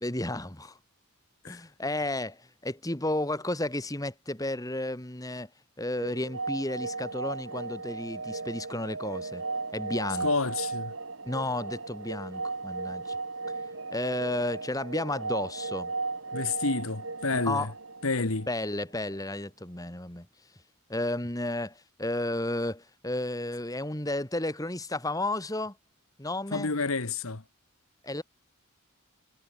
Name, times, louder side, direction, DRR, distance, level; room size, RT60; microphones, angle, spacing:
voice 1, 0.0-0.8 1.5-5.5 5.8-9.4 9.7-10.3 11.3-13.2 13.9-15.9 17.5-17.7 18.2-20.3 20.9-25.7 26.2-26.7 28.0-28.2, left 1 dB, 15° left, 1.9 m, -32 dB
sound 1, 5.9-18.7, right 3 dB, 65° right, 2.5 m, -36 dB
voice 2, 10.2-10.9 16.3-17.7 18.0-18.5 26.5-27.4, left 3 dB, 70° left, 1.5 m, -29 dB
head